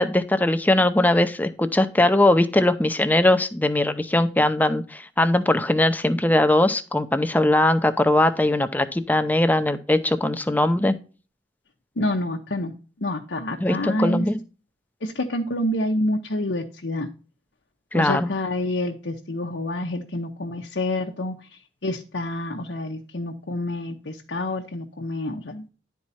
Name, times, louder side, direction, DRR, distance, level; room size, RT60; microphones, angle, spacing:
voice 1, 0.0-10.9 13.6-14.4 17.9-18.3, left 1 dB, 10° left, 10 dB, 0.6 m, -20 dB
voice 2, 12.0-14.2 15.0-17.1 17.9-25.7, left 1 dB, 80° left, 1 dB, 1.0 m, -28 dB
11.0 x 4.7 x 4.2 m, 0.36 s
head